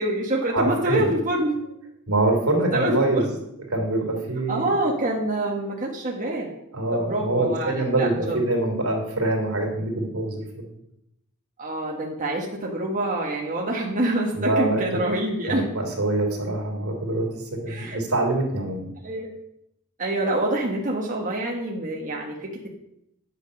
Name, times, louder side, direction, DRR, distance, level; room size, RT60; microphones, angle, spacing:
voice 1, 0.0-1.6 2.7-3.2 4.5-6.5 6.9-8.4 11.6-15.7 17.7-18.0 19.0-19.3 20.0-22.7, right 1 dB, 35° right, -2 dB, 1.4 m, -26 dB
voice 2, 0.5-1.1 2.1-3.3 3.7-4.7 6.7-10.4 14.3-14.8 15.5-17.3 17.6-18.9, right 2 dB, 75° right, 1 dB, 2.9 m, -24 dB
9.8 x 8.3 x 5.3 m, 0.81 s
head